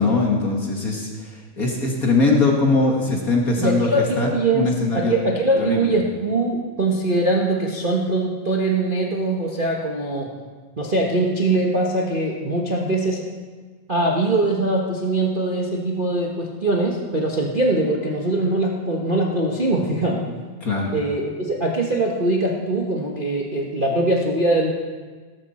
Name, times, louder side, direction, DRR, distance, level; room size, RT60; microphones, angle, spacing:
voice 1, 0.0-5.1 5.6-5.9 20.6-20.9, left 3 dB, 35° left, -1 dB, 1.9 m, -21 dB
voice 2, 3.6-4.7 4.9-10.3 10.8-13.2 13.9-20.2 20.9-24.7, right 2 dB, 70° right, -2 dB, 0.4 m, -22 dB
17.5 x 14.0 x 4.3 m, 1.5 s
omnidirectional pair, 3.3 m